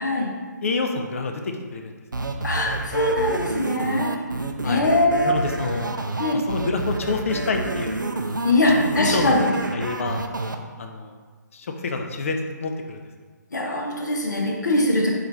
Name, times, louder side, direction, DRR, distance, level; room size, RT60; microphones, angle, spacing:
voice 1, 0.0-0.3 2.4-4.1 4.6-5.4 6.2-6.4 8.4-9.5 13.5-15.1, left 1 dB, 65° left, -1 dB, 0.8 m, -22 dB
voice 2, 0.6-1.9 4.6-4.8 5.2-5.9 6.3-8.0 8.5-8.6 9.0-9.4 9.7-10.3 10.8-11.2 11.5-13.0, left 3 dB, 45° left, 4 dB, 0.4 m, -27 dB
sound 1, 2.1-10.6, right 2 dB, 85° right, 0.4 m, -29 dB
3.7 x 2.9 x 3.3 m, 1.5 s
figure-of-eight pair, 140°, 10 cm